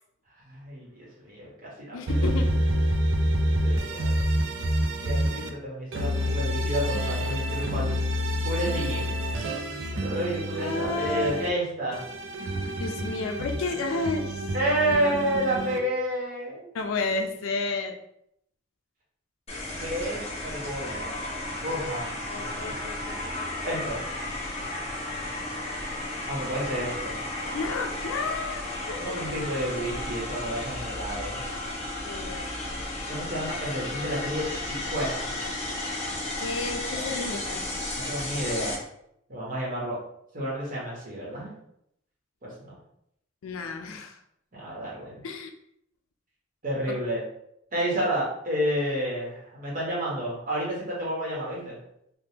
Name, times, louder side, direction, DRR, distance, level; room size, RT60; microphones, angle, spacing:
voice 1, 0.5-2.2 3.6-4.2 5.0-7.9 8.4-9.1 9.9-12.0 14.5-16.7 19.8-21.1 21.6-22.7 23.6-24.0 26.3-27.6 29.0-31.4 33.1-35.2 36.9-37.1 37.9-38.8 39.3-40.0 40.3-41.5 42.4-42.7 44.5-45.2 46.6-47.2 47.7-51.8, right 1 dB, 40° right, -5 dB, 1.0 m, -30 dB
voice 2, 1.9-2.5 10.6-11.3 12.8-14.4 14.9-15.1 16.7-17.9 22.3-23.7 27.5-29.5 32.0-32.5 36.4-37.6 43.4-44.2 45.2-45.5, left 3 dB, 80° left, 4 dB, 0.4 m, -32 dB
sound 1, 2.1-5.5 5.9-11.5 11.9-15.8, equal, 65° right, 0.4 m, -28 dB
sound 2, 19.5-38.7, left 1 dB, 30° left, 0.8 m, -33 dB
3.4 x 2.2 x 2.8 m, 0.76 s
head